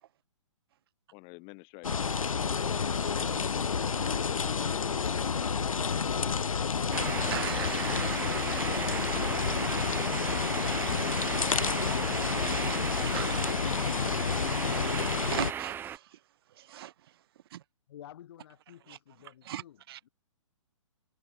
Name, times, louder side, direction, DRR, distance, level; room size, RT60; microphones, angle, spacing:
voice 1, 1.1-7.4, left 37 dB, 30° left, 1.2 m, -50 dB
sound 1, 1.8-15.5, left 6 dB, 85° left, 0.5 m, -30 dB
sound 2, 6.1-11.8, right 3 dB, 85° right, 5.4 m, -59 dB
sound 3, 6.9-16.0, right 9 dB, 10° right, 0.7 m, -36 dB
voice 2, 7.3-8.9 9.2-9.3 12.3-13.4 15.3-16.2 16.6-16.9 17.5-17.6 18.9-19.0 19.4-20.0, right 12 dB, 45° right, 0.4 m, -40 dB
voice 3, 17.9-20.1, left 11 dB, 50° left, 2.7 m, -51 dB
figure-of-eight pair, 130°, 17 cm